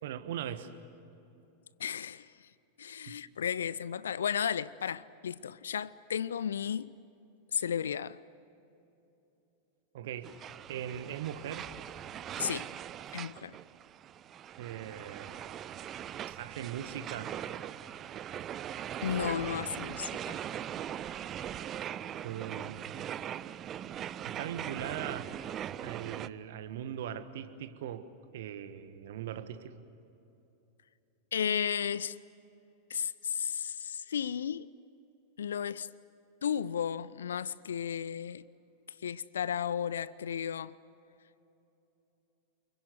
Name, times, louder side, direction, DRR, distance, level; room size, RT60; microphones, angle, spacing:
voice 1, 0.0-0.7 3.1-3.2 9.9-10.3 10.7-11.7 14.6-15.4 16.3-17.3 22.2-23.2 24.2-25.3 25.8-29.8, right 10 dB, 55° right, 1.4 m, -40 dB
voice 2, 1.8-2.5 2.8-6.9 7.5-8.2 12.4-12.7 13.1-13.6 19.0-20.4 31.3-32.1 32.9-34.7 35.4-35.9 36.4-38.5 39.0-40.8, left 8 dB, 65° left, 0.5 m, -34 dB
sound 1, 10.2-26.3, right 10 dB, 30° right, 0.6 m, -40 dB
29.5 x 22.5 x 7.8 m
figure-of-eight pair, 90°, 0 cm